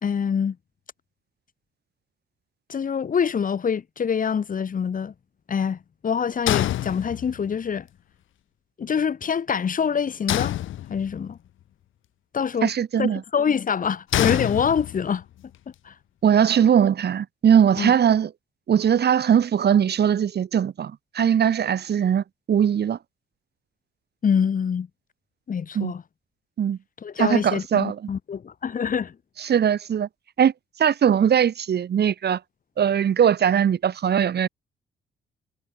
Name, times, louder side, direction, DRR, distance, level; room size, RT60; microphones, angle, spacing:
voice 1, 0.0-0.6 2.7-5.1 5.5-7.9 8.8-10.5 10.9-11.4 12.3-12.7 13.0-15.2 15.8-15.9 17.8-17.9 24.2-24.9 25.5-26.0 27.0-29.1, left 7 dB, 45° left, 1.7 m, -25 dB
sound 1, 6.5-7.5 10.3-11.3 14.1-15.2, left 13 dB, 80° left, 3.0 m, -26 dB
voice 2, 12.6-13.2 16.2-18.3 18.7-23.0 25.7-25.9 26.6-26.8 27.2-28.0 29.4-30.1 30.4-30.5 30.8-32.4 32.8-34.5, right 8 dB, 55° right, 2.7 m, -20 dB
cardioid pair, 90°, 20 cm